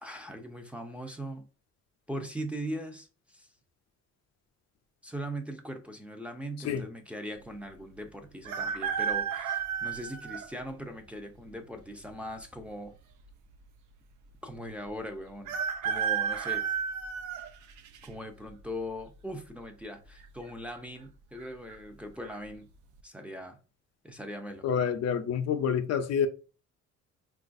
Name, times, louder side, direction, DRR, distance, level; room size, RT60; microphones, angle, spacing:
voice 1, 0.0-1.4 2.1-3.5 5.0-12.9 14.4-15.6 15.8-16.6 18.0-22.7 23.0-23.6 24.0-24.7, equal, 5° right, 0.5 m, -40 dB
sound 1, 8.4-10.5 11.1-11.2 12.3-13.0 13.3-13.4 13.5-13.6 15.5-18.1 18.6-19.0 20.1-20.5 20.7-20.8 21.4-21.8 22.2-22.4, right 7 dB, 70° right, 0.5 m, -32 dB
voice 2, 24.6-26.3, left 7 dB, 55° left, 0.5 m, -28 dB
3.8 x 2.4 x 2.5 m
cardioid pair, 90°, 30 cm